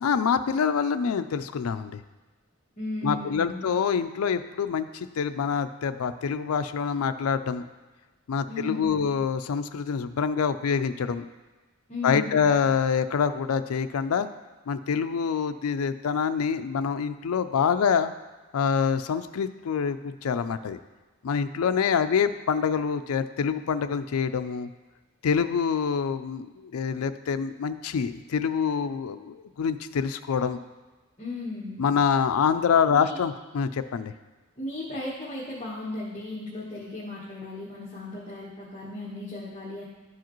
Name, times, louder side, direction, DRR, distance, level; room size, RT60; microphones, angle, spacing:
voice 1, 0.0-2.0 3.0-7.6 8.3-11.2 12.0-14.3 14.7-18.1 18.5-20.8 21.2-24.7 25.2-30.6 31.8-34.1, left 6 dB, 75° left, 10 dB, 0.4 m, -26 dB
voice 2, 2.8-3.7 8.5-9.1 11.9-12.5 31.2-31.8 32.9-33.2 34.6-39.8, left 2 dB, 30° left, -6 dB, 1.2 m, -36 dB
12.0 x 4.8 x 3.0 m, 1.2 s
head